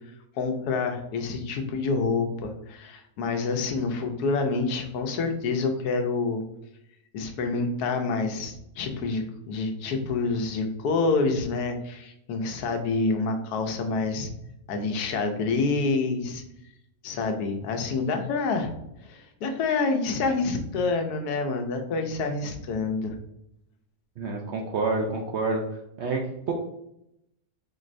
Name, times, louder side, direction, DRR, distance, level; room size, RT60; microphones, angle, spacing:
voice 1, 0.4-6.4 7.1-14.3 14.7-16.4 17.0-18.7 19.0-23.2, left 3 dB, 85° left, 5 dB, 1.2 m, -27 dB
voice 2, 24.2-25.6 26.0-26.5, right 3 dB, 70° right, 1 dB, 0.6 m, -28 dB
4.4 x 3.1 x 2.5 m, 0.81 s
omnidirectional pair, 1.6 m